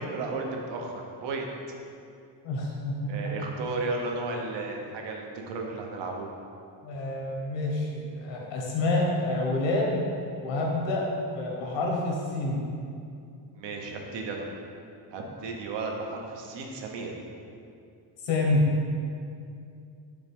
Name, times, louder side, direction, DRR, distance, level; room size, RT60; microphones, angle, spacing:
voice 1, 0.0-1.5 3.1-6.3 13.5-14.5 15.1-17.1, right 3 dB, 75° right, 1 dB, 1.0 m, -34 dB
voice 2, 2.4-3.5 6.8-10.1 10.4-12.6 18.2-18.8, left 2 dB, 85° left, -2 dB, 1.5 m, -28 dB
5.3 x 3.9 x 5.3 m, 2.4 s
cardioid pair, 170°, 43 cm